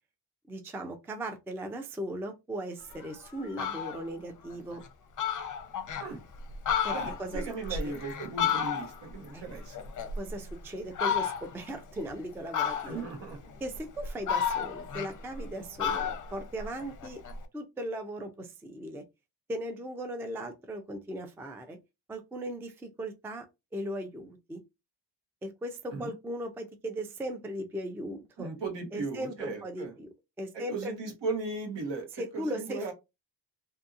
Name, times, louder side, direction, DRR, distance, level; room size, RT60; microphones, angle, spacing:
voice 1, 0.5-4.8 6.8-8.0 9.3-9.4 10.2-13.0 13.6-17.2 17.5-19.0 19.5-21.8 22.1-23.5 23.7-24.6 25.4-28.5 28.9-30.1 30.4-30.9 32.2-32.9, right 1 dB, 5° right, 0.3 m, -38 dB
Fowl, 2.9-3.0 3.4-4.0 4.5-4.6 4.9-5.0 5.2-6.1 6.5-9.1 9.5-10.5 10.9-11.6 12.5-13.2 13.7-15.5 15.8-17.4, left 7 dB, 45° left, 0.6 m, -32 dB
voice 2, 6.9-9.8 12.8-13.4 25.9-26.1 28.4-29.9 30.5-32.1 32.3-32.9, right 3 dB, 70° right, 1.2 m, -37 dB
2.6 x 2.6 x 2.4 m
cardioid pair, 95°, 45 cm